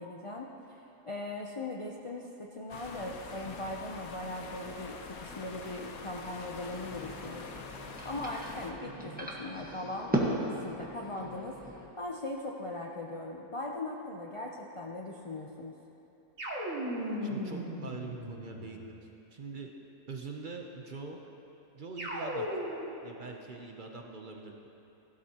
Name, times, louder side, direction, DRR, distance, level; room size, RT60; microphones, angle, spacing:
voice 1, 0.0-7.5 8.0-11.6 12.0-15.7, left 2 dB, 55° left, -1 dB, 0.3 m, -39 dB
sound 1, 2.7-8.7, left 4 dB, 75° left, 1.3 m, -45 dB
sound 2, 6.8-11.9, right 1 dB, 5° right, 1.1 m, -37 dB
sound 3, 16.4-18.9 22.0-23.0, equal, 60° right, 2.3 m, -36 dB
voice 2, 17.2-19.7 20.1-21.2 21.7-22.5 23.0-24.7, right 4 dB, 45° right, 1 dB, 0.7 m, -43 dB
16.0 x 12.5 x 2.9 m, 3.0 s
omnidirectional pair, 1.5 m